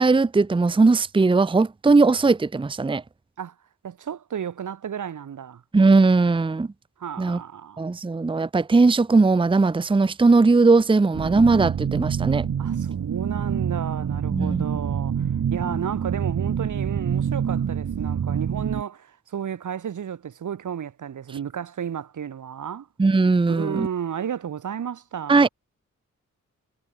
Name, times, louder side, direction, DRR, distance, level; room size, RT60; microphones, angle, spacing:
voice 1, 0.0-3.0 5.7-6.7 7.2-7.4 7.8-12.5 14.3-14.7 23.0-23.9 25.3-25.5, right 3 dB, 15° right, 0.8 m, -19 dB
voice 2, 3.8-5.6 7.0-7.8 12.6-22.9 23.5-25.5, right 8 dB, 90° right, 3.4 m, -32 dB
sound 1, 11.1-18.8, right 8 dB, 65° right, 2.6 m, -26 dB
wide cardioid pair, 160°, 30 cm